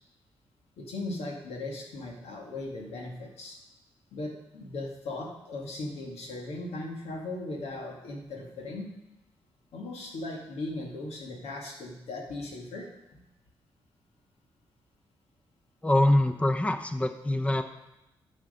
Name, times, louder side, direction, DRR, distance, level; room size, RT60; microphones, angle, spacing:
voice 1, 0.8-3.6 4.1-8.9 9.7-12.9, left 2 dB, 75° left, 0 dB, 2.0 m, -38 dB
voice 2, 15.8-17.6, left 1 dB, 10° left, 8 dB, 0.7 m, -24 dB
10.5 x 6.3 x 5.1 m, 0.93 s
supercardioid pair, 45°, 11 cm